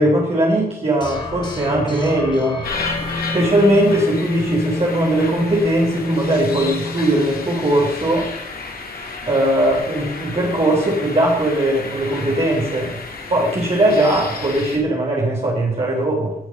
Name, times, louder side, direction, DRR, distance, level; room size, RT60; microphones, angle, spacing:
voice 1, 0.0-2.6 3.3-8.3 9.3-13.0 13.3-16.3, right 1 dB, 40° right, -4 dB, 3.8 m, -19 dB
sound 1, 1.0-7.9, left 2 dB, 30° left, 2.6 m, -29 dB
sound 2, 2.6-14.8, left 4 dB, 70° left, 2.8 m, -32 dB
19.0 x 6.4 x 5.5 m, 0.81 s
wide cardioid pair, 115°, 16 cm